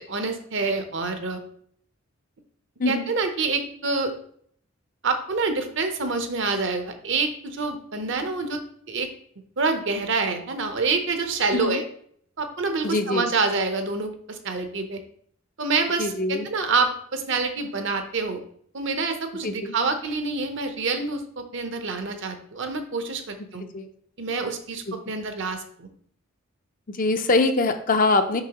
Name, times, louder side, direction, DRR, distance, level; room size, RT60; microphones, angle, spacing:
voice 1, 0.0-1.4 2.9-4.1 5.0-8.6 8.9-9.1 9.6-11.8 12.4-15.0 15.6-18.4 18.7-23.6 24.2-25.9, right 4 dB, 55° right, 7 dB, 0.8 m, -27 dB
voice 2, 12.8-13.3 16.0-16.5 19.4-19.8 23.6-23.9 26.9-28.4, left 3 dB, 40° left, 7 dB, 0.5 m, -23 dB
6.7 x 5.5 x 2.9 m, 0.62 s
head